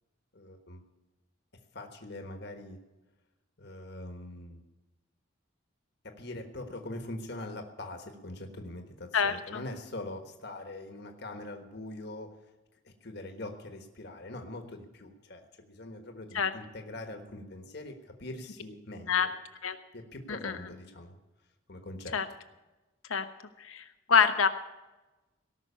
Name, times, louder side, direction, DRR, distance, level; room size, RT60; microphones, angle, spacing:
voice 1, 0.3-0.8 1.7-2.8 3.6-4.6 6.0-12.3 12.8-19.3 19.9-21.2 21.7-22.1, left 2 dB, 55° left, 5 dB, 1.4 m, -43 dB
voice 2, 9.1-9.6 16.3-16.5 19.1-19.3 19.6-19.8 20.3-20.6 22.1-22.3 23.1-23.3 23.6-24.5, left 6 dB, 90° left, 8 dB, 1.1 m, -26 dB
18.0 x 6.2 x 8.4 m, 1.1 s
head